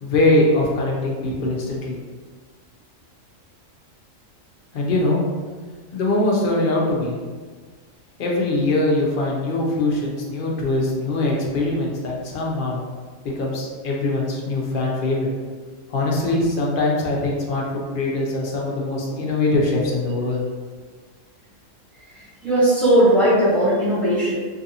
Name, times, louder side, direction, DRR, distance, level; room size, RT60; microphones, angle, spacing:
voice 1, 0.0-2.0 4.7-5.2 5.9-7.2 8.2-12.8 13.2-15.3 15.9-20.4, left 2 dB, 55° left, -3 dB, 0.6 m, -22 dB
voice 2, 22.1-24.3, right 1 dB, ahead, -12 dB, 1.2 m, -18 dB
3.2 x 2.5 x 2.7 m, 1.5 s
omnidirectional pair, 1.4 m